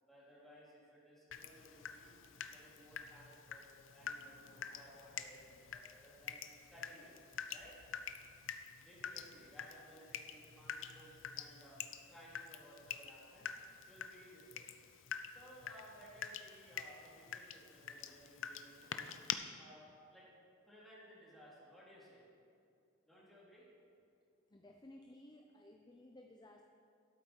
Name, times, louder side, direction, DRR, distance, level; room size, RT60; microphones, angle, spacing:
voice 1, 0.0-2.1 2.5-3.6 3.9-6.4 6.7-7.1 7.5-7.8 8.8-11.8 12.0-13.5 13.9-14.7 15.3-19.1 19.5-20.3 20.6-22.2 23.0-23.6, equal, ahead, -8 dB, 3.1 m, -59 dB
Water tap faucet / Drip, 1.3-19.3, left 8 dB, 75° left, 0.6 m, -47 dB
voice 2, 24.5-26.6, left 1 dB, 20° left, 3 dB, 0.5 m, -57 dB
12.5 x 8.3 x 4.6 m, 2.5 s
head